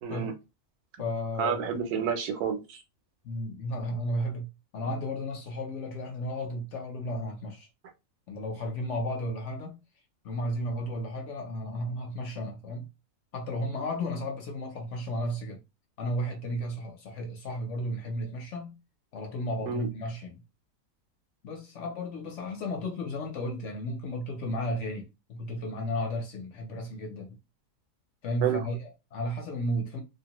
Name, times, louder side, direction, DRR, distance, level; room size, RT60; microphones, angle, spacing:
voice 1, 0.0-0.3 1.4-2.8 19.7-19.9 28.4-28.6, right 7 dB, 80° right, 1.2 m, -29 dB
voice 2, 1.0-1.7 3.2-4.5 4.7-7.7 8.3-9.8 10.2-12.9 13.3-15.6 16.0-18.7 19.1-20.4 21.4-27.4 28.2-30.0, equal, 60° left, 0.9 m, -33 dB
2.7 x 2.1 x 2.9 m
omnidirectional pair, 1.6 m